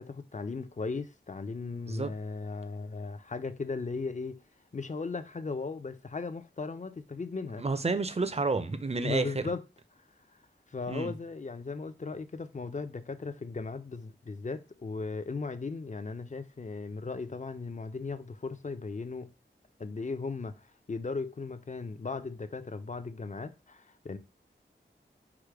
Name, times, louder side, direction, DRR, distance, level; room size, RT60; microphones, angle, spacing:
voice 1, 0.0-4.4 4.7-7.6 9.0-9.6 10.7-19.3 19.8-24.2, left 4 dB, 40° left, 0.5 m, -37 dB
voice 2, 7.6-9.4 10.9-11.1, right 3 dB, 30° right, 0.5 m, -30 dB
4.9 x 2.1 x 4.6 m
wide cardioid pair, 70°, 20 cm